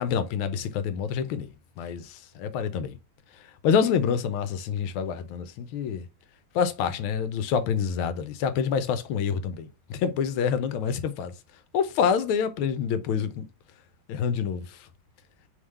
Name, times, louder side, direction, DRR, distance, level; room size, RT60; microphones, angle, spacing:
voice 1, 0.0-1.5 1.8-2.1 2.4-3.0 3.6-6.0 6.5-11.3 11.7-13.4 14.1-14.6, left 7 dB, 85° left, 1.5 m, -27 dB
3.6 x 3.5 x 3.1 m
omnidirectional pair, 2.3 m